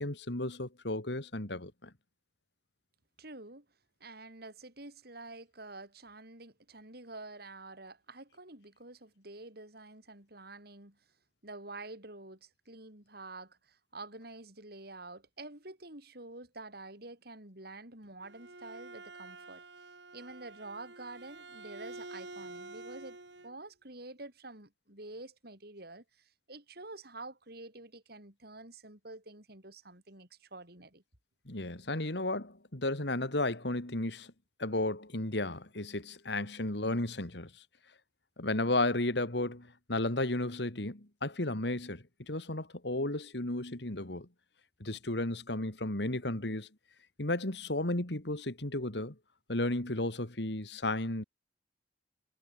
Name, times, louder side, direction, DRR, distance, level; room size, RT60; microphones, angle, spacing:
voice 1, 0.0-1.9 31.5-34.3 34.6-37.5 38.4-44.3 44.8-46.7 47.2-49.1 49.5-51.2, left 2 dB, 70° left, 2.7 m, -33 dB
voice 2, 3.2-3.6 4.0-11.0 11.4-19.6 20.1-31.0, right 2 dB, 60° right, 6.7 m, -48 dB
Bowed string instrument, 18.0-23.6, right 2 dB, 80° right, 5.7 m, -48 dB
head